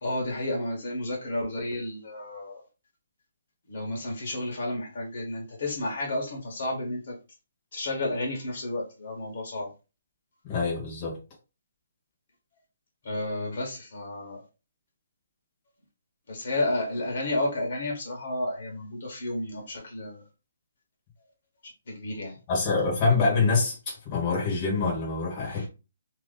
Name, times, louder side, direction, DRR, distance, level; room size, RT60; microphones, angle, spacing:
voice 1, 0.0-2.6 3.7-7.2 7.7-9.7 13.0-14.4 16.3-20.2 21.9-22.4 25.4-25.6, left 1 dB, 45° left, 1.3 m, -31 dB
voice 2, 10.4-11.2 22.5-25.7, left 4 dB, 20° left, 1.2 m, -25 dB
2.8 x 2.7 x 3.8 m
hypercardioid pair, 175°, 0 cm